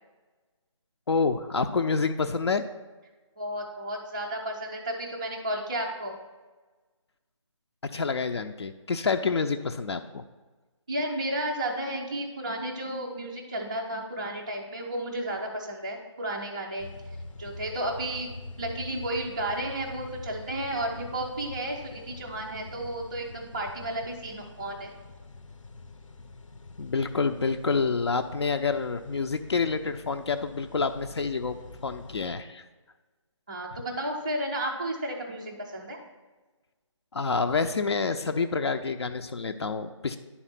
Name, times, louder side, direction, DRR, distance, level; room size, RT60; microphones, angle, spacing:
voice 1, 1.1-2.6 7.8-10.2 26.8-31.6 31.8-32.6 37.1-40.2, left 4 dB, 60° left, 7 dB, 0.5 m, -28 dB
voice 2, 3.4-6.2 10.9-16.9 17.4-18.3 18.6-24.9 33.5-36.0, right 1 dB, 15° right, -4 dB, 0.3 m, -33 dB
sound 1, 16.8-32.4, left 2 dB, 90° left, 0.8 m, -45 dB
10.0 x 4.3 x 5.7 m, 1.3 s
figure-of-eight pair, 165°, 16 cm